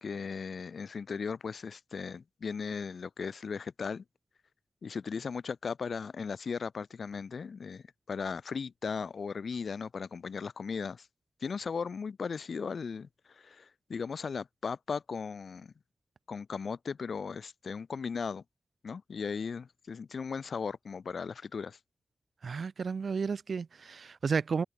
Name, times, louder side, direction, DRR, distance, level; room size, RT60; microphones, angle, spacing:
voice 1, 0.0-4.0 4.8-11.1 11.4-15.7 16.3-18.4 18.8-21.8, left 5 dB, 80° left, 0.5 m, -37 dB
voice 2, 22.4-24.6, right 5 dB, 75° right, 0.3 m, -32 dB
wide cardioid pair, 75°, 0 cm